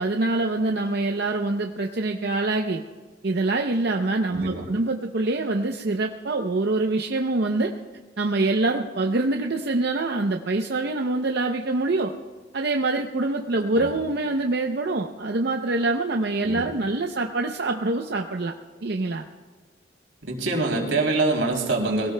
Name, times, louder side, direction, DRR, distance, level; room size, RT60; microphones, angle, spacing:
voice 1, 0.0-2.8 3.2-7.7 8.2-12.1 12.5-18.5 18.8-19.2, right 2 dB, 60° right, 3 dB, 0.6 m, -25 dB
voice 2, 4.3-4.6 13.7-13.9 16.4-16.7 20.2-22.1, right 2 dB, 90° right, 0 dB, 3.0 m, -25 dB
22.0 x 17.0 x 2.2 m, 1.4 s
head